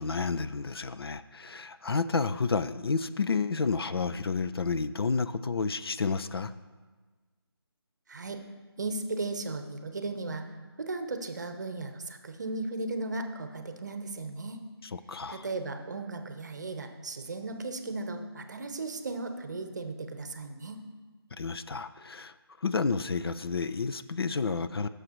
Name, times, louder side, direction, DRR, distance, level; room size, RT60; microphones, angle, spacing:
voice 1, 0.0-6.5 14.9-15.5 21.4-22.3 22.6-24.9, left 4 dB, 65° left, 12 dB, 0.5 m, -30 dB
voice 2, 8.8-10.5 10.8-14.6 15.3-20.8, right 3 dB, 45° right, 7 dB, 0.9 m, -36 dB
15.0 x 6.5 x 3.0 m, 1.3 s
figure-of-eight pair, 165°, 13 cm